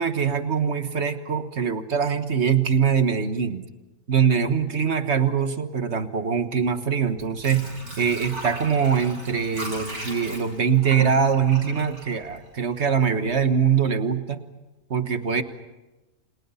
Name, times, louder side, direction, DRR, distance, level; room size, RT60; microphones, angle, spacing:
voice 1, 0.0-3.7 4.1-7.7 8.0-14.4 14.9-15.4, right 7 dB, 50° right, 9 dB, 1.6 m, -23 dB
Water / Sink (filling or washing), 7.0-12.9 13.3-13.4, right 1 dB, 85° right, 7.9 m, -37 dB
28.5 x 28.5 x 5.7 m, 1.1 s
omnidirectional pair, 1.5 m